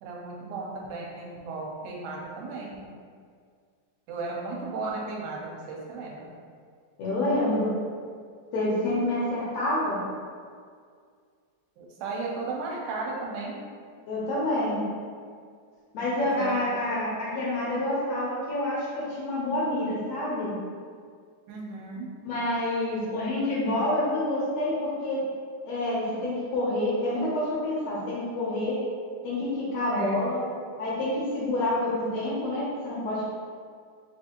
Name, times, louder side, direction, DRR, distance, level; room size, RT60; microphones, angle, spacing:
voice 1, 0.0-2.8 4.1-6.3 11.8-13.6 16.1-16.6 21.5-22.1 29.9-30.2, right 3 dB, 80° right, -2 dB, 2.1 m, -35 dB
voice 2, 7.0-7.7 8.5-10.0 14.1-14.9 15.9-20.5 22.2-25.2 25.7-28.8 29.2-30.4 30.8-33.3, left 1 dB, 70° left, -7 dB, 1.9 m, -28 dB
4.8 x 3.4 x 2.9 m, 2.1 s
omnidirectional pair, 3.8 m